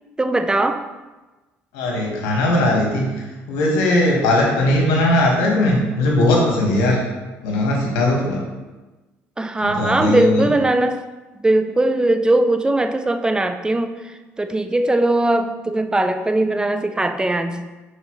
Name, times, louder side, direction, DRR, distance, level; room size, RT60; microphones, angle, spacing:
voice 1, 0.2-0.8 9.4-11.0 11.4-14.0 14.4-17.7, right 2 dB, 15° right, 8 dB, 0.5 m, -19 dB
voice 2, 1.7-7.0 7.4-8.4 9.6-10.5, left 1 dB, 80° left, -2 dB, 1.5 m, -19 dB
6.6 x 4.8 x 3.1 m, 1.2 s
hypercardioid pair, 65°, 6 cm